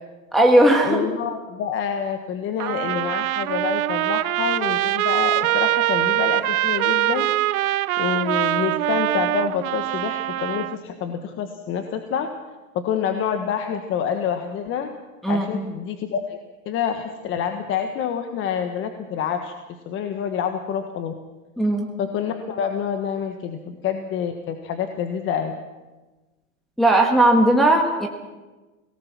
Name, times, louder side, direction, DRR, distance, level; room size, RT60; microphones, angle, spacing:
voice 1, 0.3-1.0 15.2-15.7 21.6-21.9 26.8-28.1, right 1 dB, ahead, -1 dB, 1.5 m, -17 dB
voice 2, 0.8-12.3 12.7-14.9 15.3-16.4 16.6-19.5 19.8-21.1 22.0-25.5, left 8 dB, 30° left, 6 dB, 1.4 m, -27 dB
Trumpet, 2.6-10.8, right 15 dB, 90° right, 0.8 m, -23 dB
25.0 x 18.5 x 6.0 m, 1.2 s
supercardioid pair, 145°, 41 cm